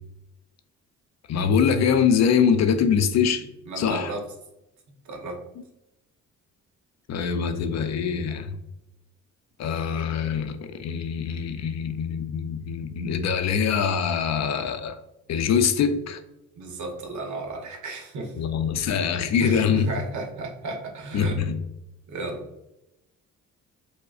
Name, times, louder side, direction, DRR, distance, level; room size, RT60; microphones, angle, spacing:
voice 1, 1.3-3.5 3.8-4.1 7.1-8.6 9.6-15.0 15.3-16.2 18.4-19.9 21.1-21.6, left 7 dB, 55° left, 9 dB, 0.4 m, -23 dB
voice 2, 3.7-4.2 5.0-5.4 16.6-18.3 19.4-21.4 22.1-22.5, right 2 dB, 60° right, 3 dB, 0.8 m, -34 dB
4.6 x 2.0 x 2.4 m, 0.90 s
supercardioid pair, 70°, 32 cm